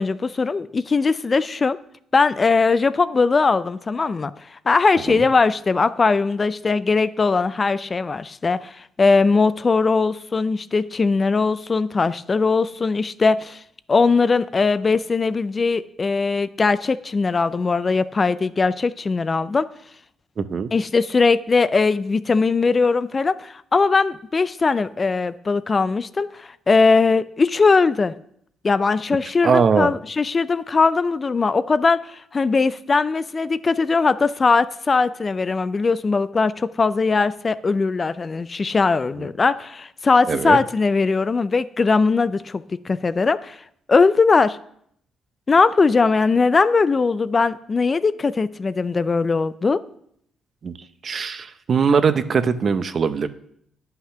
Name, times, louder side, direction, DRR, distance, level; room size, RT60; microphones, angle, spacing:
voice 1, 0.0-1.8 2.1-13.6 13.9-19.7 20.7-28.1 28.6-43.6 43.9-44.6 45.5-49.8, left 4 dB, 30° left, 15 dB, 0.4 m, -20 dB
voice 2, 20.4-20.7 29.4-29.9 40.3-40.6 50.6-50.8 51.0-53.3, right 6 dB, 45° right, 12 dB, 0.6 m, -20 dB
10.0 x 5.7 x 5.7 m, 0.70 s
cardioid pair, 90°, 0 cm